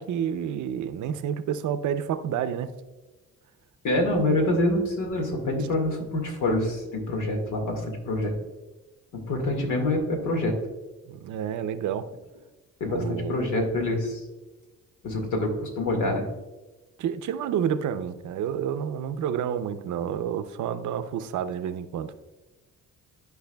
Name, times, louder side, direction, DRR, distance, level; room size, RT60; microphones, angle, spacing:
voice 1, 0.0-2.7 11.1-12.1 12.9-13.4 17.0-22.1, right 9 dB, 75° right, 11 dB, 0.6 m, -29 dB
voice 2, 3.8-8.4 9.1-10.6 12.8-14.2 15.0-16.3, left 1 dB, 80° left, 2 dB, 1.9 m, -26 dB
13.0 x 4.7 x 2.3 m, 1.1 s
cardioid pair, 90°, 30 cm